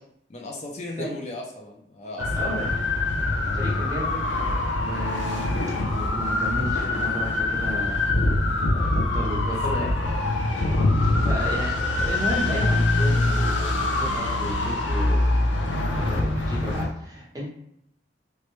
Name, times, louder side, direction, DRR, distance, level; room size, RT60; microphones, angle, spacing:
voice 1, 0.3-2.5 9.7-10.2 11.0-11.3 14.1-14.8, left 1 dB, 35° left, 0 dB, 0.4 m, -38 dB
sound 1, 2.2-16.9, left 2 dB, 90° left, 0.6 m, -24 dB
voice 2, 2.4-2.7 3.4-4.2 4.7-5.5 5.9-8.0 8.7-9.9 11.2-15.2 15.9-17.4, equal, 20° right, -3 dB, 0.7 m, -33 dB
3.0 x 2.1 x 3.1 m, 0.74 s
head